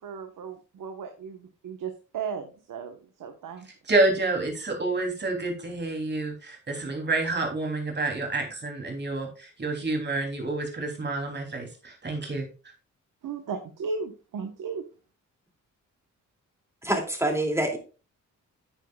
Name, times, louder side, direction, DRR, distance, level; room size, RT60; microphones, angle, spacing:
voice 1, 0.0-3.7 13.2-14.8, right 5 dB, 80° right, 5 dB, 1.2 m, -36 dB
voice 2, 3.8-12.4, right 2 dB, 35° right, 2 dB, 3.0 m, -28 dB
voice 3, 16.8-17.8, right 1 dB, 10° right, 3 dB, 2.5 m, -26 dB
9.2 x 9.1 x 2.3 m, 0.34 s
wide cardioid pair, 115°, 32 cm